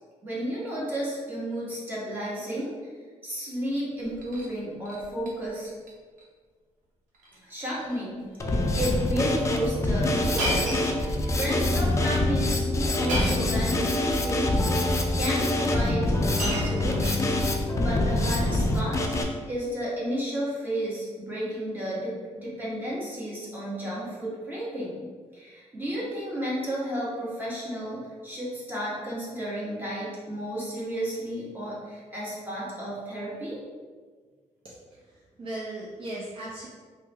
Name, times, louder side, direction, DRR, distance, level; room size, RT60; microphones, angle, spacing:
voice 1, 0.2-2.9 3.2-5.7 7.4-10.7 11.3-14.5 15.2-17.4 17.7-19.0 19.5-25.0 25.3-33.6, equal, 15° right, -7 dB, 1.2 m, -32 dB
Shatter, 4.0-4.5 4.8-5.3 5.6-5.9 6.2-6.3 7.1-7.4 7.7-8.0 8.7-8.8 10.4-11.5 13.1-13.6 14.6-14.7 15.7-15.8 16.1-17.6 18.5-18.8, equal, 85° right, 0.8 m, -32 dB
Drum kit, 8.4-19.2, left 1 dB, 25° left, 0.4 m, -25 dB
voice 2, 34.6-36.7, right 1 dB, 45° right, -7 dB, 0.6 m, -38 dB
3.5 x 2.1 x 3.2 m, 1.5 s
cardioid pair, 110°, 13 cm